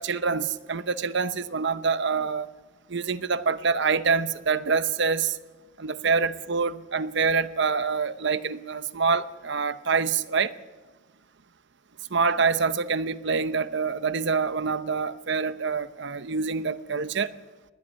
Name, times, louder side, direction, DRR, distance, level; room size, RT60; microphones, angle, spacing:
voice 1, 0.0-2.5 2.9-5.4 5.8-10.5 12.1-17.3, right 5 dB, 60° right, 0.8 m, -26 dB
20.5 x 15.0 x 9.7 m
head